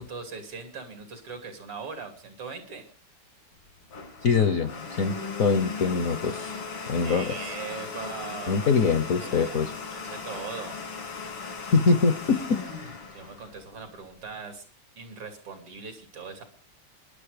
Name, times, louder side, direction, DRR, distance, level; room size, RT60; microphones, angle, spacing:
voice 1, 0.0-2.9 7.0-9.6 9.9-10.8 13.1-14.6 15.0-16.4, right 5 dB, 80° right, 7 dB, 3.6 m, -40 dB
Domestic sounds home sounds, 3.5-14.2, left 5 dB, 90° left, 4.1 m, -38 dB
voice 2, 4.2-4.7 5.0-5.1 5.4-6.5 6.9-7.2 8.5-9.7 11.7-12.6, left 5 dB, 55° left, 11 dB, 1.0 m, -23 dB
24.5 x 11.0 x 5.0 m, 0.44 s
omnidirectional pair, 2.4 m